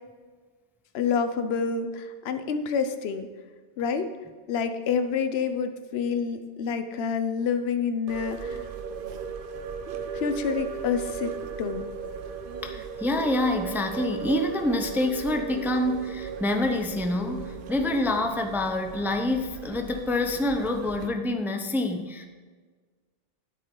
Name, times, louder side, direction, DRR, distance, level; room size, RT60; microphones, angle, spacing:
voice 1, 0.9-3.3 3.8-4.1 4.5-8.6 10.2-11.9, left 6 dB, 60° left, 9 dB, 0.9 m, -28 dB
sound 1, 8.1-21.1, right 6 dB, 55° right, 0.7 m, -37 dB
voice 2, 12.6-22.3, left 1 dB, 5° right, 6 dB, 0.4 m, -27 dB
10.5 x 8.5 x 3.8 m, 1.4 s
omnidirectional pair, 1.2 m